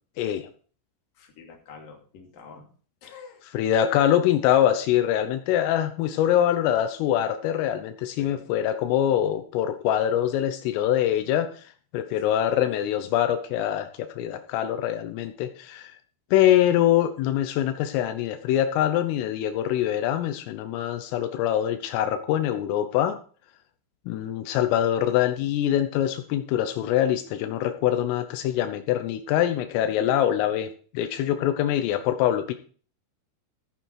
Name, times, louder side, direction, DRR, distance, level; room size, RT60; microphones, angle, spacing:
voice 1, 0.2-0.5 3.5-11.5 11.9-15.9 16.3-23.2 24.1-30.7 31.0-32.5, left 11 dB, 85° left, 8 dB, 3.5 m, -24 dB
voice 2, 1.2-2.7 3.0-3.4 8.2-8.5, left 5 dB, 50° left, 1 dB, 3.9 m, -46 dB
14.0 x 9.1 x 4.7 m, 0.42 s
omnidirectional pair, 5.8 m